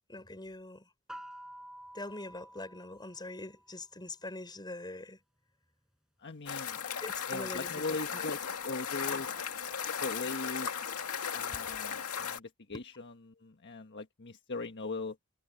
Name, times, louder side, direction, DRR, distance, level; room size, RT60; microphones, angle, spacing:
voice 1, 0.1-0.9 1.9-5.2 7.0-8.2 11.5-11.7 12.7-12.8, left 2 dB, 20° left, 4.8 m, -43 dB
sound 1, 1.1-3.8, equal, 5° right, 6.0 m, -50 dB
voice 2, 6.2-6.8 7.3-9.3 10.0-10.7 11.3-15.2, left 3 dB, 55° left, 1.4 m, -40 dB
sound 2, 6.5-12.4, left 7 dB, 90° left, 2.0 m, -36 dB
head